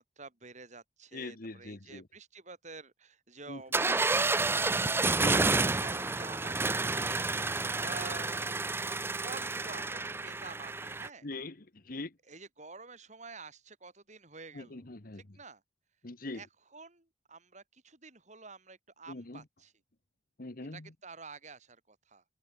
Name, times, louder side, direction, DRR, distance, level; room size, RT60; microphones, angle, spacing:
voice 1, 0.0-7.3 7.8-8.5 9.2-11.3 12.3-14.9 15.1-15.6 16.3-19.7 20.7-22.2, right 4 dB, 40° right, 6.5 m, -49 dB
voice 2, 1.1-2.0 3.5-4.0 5.2-5.5 11.2-12.1 14.5-15.4 16.0-16.4 19.1-19.4 20.4-20.9, left 2 dB, 55° left, 1.4 m, -42 dB
sound 1, 3.7-11.1, right 3 dB, 15° right, 0.5 m, -30 dB
head